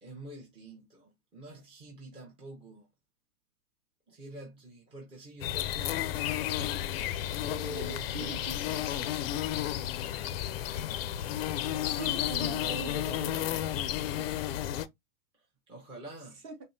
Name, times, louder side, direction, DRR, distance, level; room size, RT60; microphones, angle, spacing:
voice 1, 0.0-2.9 4.1-6.1 7.2-8.6 15.7-16.4, equal, 15° right, 0.7 m, -46 dB
sound 1, 5.4-14.9, left 12 dB, 45° left, 0.5 m, -32 dB
voice 2, 7.8-8.5 11.9-13.7 14.1-14.6 16.4-16.6, right 3 dB, 30° right, 1.2 m, -41 dB
5.3 x 2.1 x 2.7 m
hypercardioid pair, 130°, 44 cm